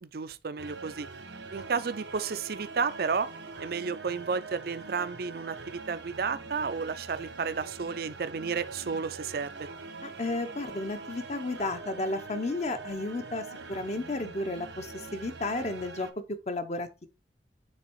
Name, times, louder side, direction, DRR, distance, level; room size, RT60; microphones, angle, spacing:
voice 1, 0.0-1.1 1.5-3.3 3.6-9.7, right 5 dB, 60° right, 0.5 m, -32 dB
sound 1, 0.6-16.1, right 3 dB, 85° right, 1.3 m, -43 dB
voice 2, 10.0-16.1 16.5-17.1, left 2 dB, 40° left, 0.9 m, -33 dB
6.6 x 3.5 x 4.6 m
head